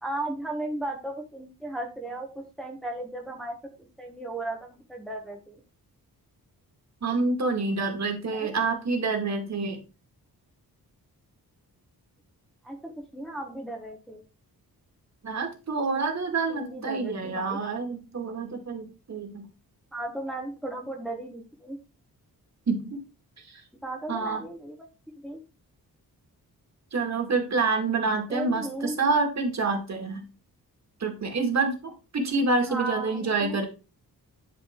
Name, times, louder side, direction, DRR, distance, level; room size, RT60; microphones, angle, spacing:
voice 1, 0.0-5.6 8.3-8.6 12.6-14.2 16.5-17.6 19.9-21.8 23.8-24.8 25.2-25.4 28.3-29.0 32.6-33.6, right 1 dB, ahead, 1 dB, 1.1 m, -36 dB
voice 2, 7.0-9.8 15.2-19.5 22.7-23.0 23.4-23.6 24.1-24.5 26.9-30.3 31.0-33.7, right 3 dB, 45° right, 4 dB, 2.1 m, -27 dB
10.5 x 4.8 x 3.7 m, 0.32 s
wide cardioid pair, 150°, 37 cm